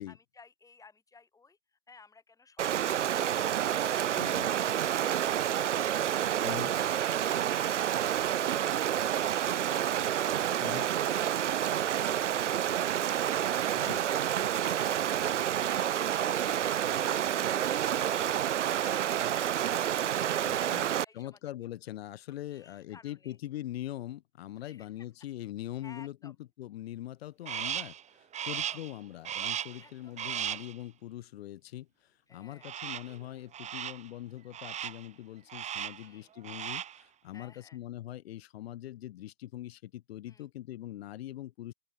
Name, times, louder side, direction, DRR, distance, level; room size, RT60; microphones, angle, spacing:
voice 1, 0.1-6.6 22.5-23.4 24.6-25.1 25.8-26.4 28.4-28.8 29.8-30.6 32.3-32.8 36.0-36.3 37.3-37.8 40.3-40.5, left 4 dB, 10° left, 6.0 m, -59 dB
Stream, 2.6-21.0, right 10 dB, 75° right, 0.8 m, -29 dB
voice 2, 4.2-4.5 6.4-6.7 10.6-10.9 13.8-14.0 20.5-20.9 21.1-41.7, left 14 dB, 55° left, 7.9 m, -42 dB
Crow, 27.5-28.0 28.3-28.9 29.2-29.8 30.2-30.7 32.6-33.2 33.5-34.1 34.5-35.1 35.5-36.1 36.4-37.0, right 10 dB, 20° right, 2.1 m, -36 dB
open air
hypercardioid pair, 120°, 36 cm